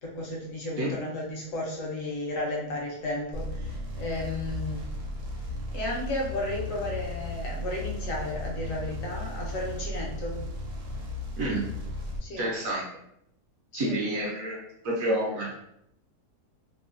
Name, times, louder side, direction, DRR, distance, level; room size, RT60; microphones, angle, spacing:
voice 1, 0.0-4.9 5.7-10.4 12.2-12.4 13.7-14.0, left 1 dB, 60° left, -2 dB, 1.0 m, -33 dB
sound 1, 3.3-12.2, left 1 dB, 85° right, 1.2 m, -35 dB
voice 2, 12.4-12.8 13.7-14.6 14.8-15.5, right 1 dB, 70° right, -2 dB, 0.9 m, -28 dB
3.0 x 2.0 x 2.4 m, 0.77 s
omnidirectional pair, 1.7 m